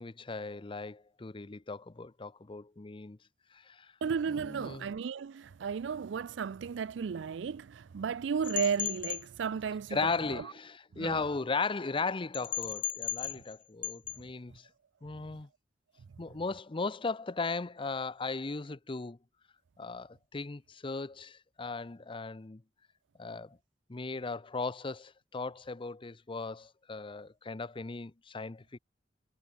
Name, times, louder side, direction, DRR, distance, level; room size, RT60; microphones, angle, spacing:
voice 1, 0.0-3.2 3.5-3.9 4.3-4.9 9.9-14.7 15.0-15.5 16.2-19.2 19.8-22.6 23.2-23.6 23.9-28.8, left 4 dB, 30° left, 0.6 m, -37 dB
voice 2, 4.0-10.1 10.9-11.2, right 6 dB, 75° right, 0.4 m, -34 dB
sound 1, 8.4-9.2 12.3-13.6 13.8-14.2, left 12 dB, 45° left, 1.2 m, -35 dB
head